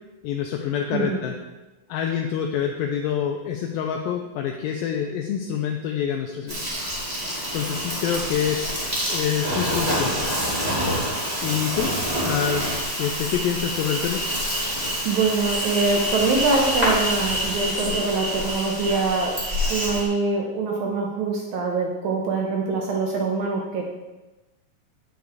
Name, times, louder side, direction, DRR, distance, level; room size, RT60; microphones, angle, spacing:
voice 1, 0.2-1.3 1.9-6.7 7.5-8.8 9.1-10.2 11.4-11.9 12.2-12.7 13.0-14.2, left 8 dB, 80° left, 3 dB, 2.2 m, -26 dB
Insect, 6.5-20.1, equal, 15° right, 1.5 m, -26 dB
voice 2, 15.0-19.3 19.7-23.9, right 3 dB, 75° right, -1 dB, 1.7 m, -24 dB
9.2 x 6.7 x 3.5 m, 1.1 s
omnidirectional pair, 4.5 m